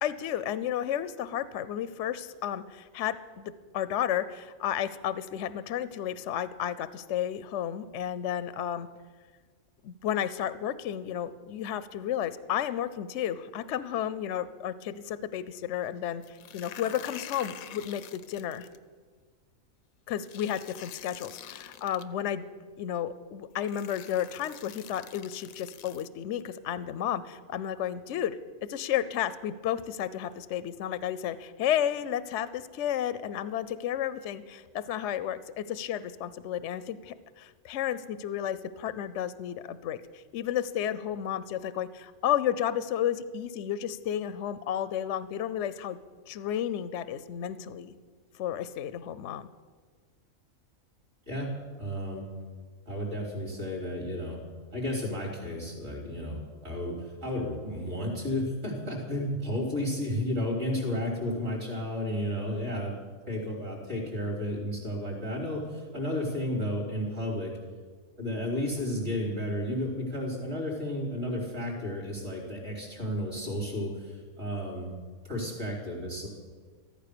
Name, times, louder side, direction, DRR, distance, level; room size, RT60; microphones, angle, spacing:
voice 1, 0.0-8.9 9.8-18.7 20.1-22.4 22.8-28.4 28.7-46.0 46.3-48.0 48.3-49.5, left 10 dB, 65° left, 15 dB, 0.9 m, -32 dB
sound 1, 16.2-18.8 20.2-22.0 23.1-23.2 23.6-26.1, left 10 dB, 85° left, 1.1 m, -46 dB
voice 2, 51.8-52.2 52.9-54.4 54.7-62.9 63.3-67.5 68.2-74.9 75.3-76.3, left 1 dB, 50° right, -1 dB, 3.9 m, -32 dB
14.5 x 14.0 x 6.8 m, 1.5 s
omnidirectional pair, 1.4 m